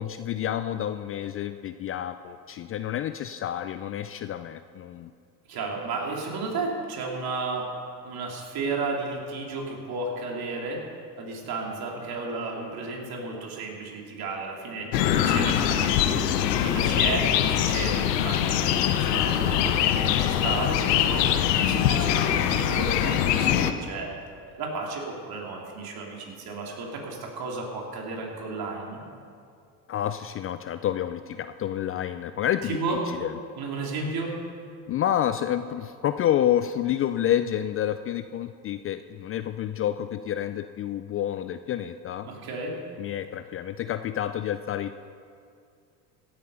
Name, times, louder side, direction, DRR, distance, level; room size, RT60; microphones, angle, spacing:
voice 1, 0.0-5.1 14.8-14.9 29.9-32.8 33.1-33.3 34.9-42.3 43.0-44.9, left 11 dB, 30° left, 11 dB, 0.4 m, -29 dB
voice 2, 5.5-7.7 8.0-10.8 11.2-16.2 16.5-18.6 18.9-24.1 24.5-29.0 32.6-33.0 33.6-34.3 42.2-42.8, right 3 dB, 50° right, -1 dB, 3.3 m, -33 dB
sound 1, 14.9-23.7, left 10 dB, 80° left, 0.9 m, -23 dB
16.5 x 8.5 x 5.6 m, 2.3 s
hypercardioid pair, 80°, 47 cm